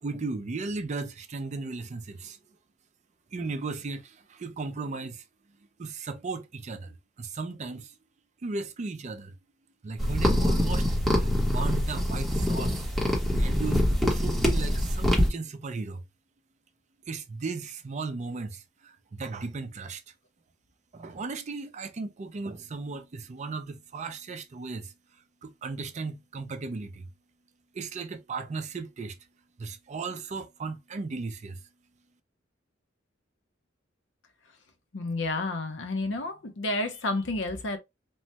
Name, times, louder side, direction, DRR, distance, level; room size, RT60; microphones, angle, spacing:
voice 1, 0.0-2.4 3.3-5.2 5.8-7.9 8.4-9.3 9.8-12.8 13.4-16.0 17.1-20.0 20.9-24.9 25.4-27.1 27.7-29.2 29.6-31.6, right 4 dB, 40° right, 0.4 m, -36 dB
sound 1, 10.0-15.3, equal, ahead, 0.8 m, -24 dB
voice 2, 34.9-37.8, left 2 dB, 70° left, 0.7 m, -30 dB
3.0 x 2.1 x 2.7 m
head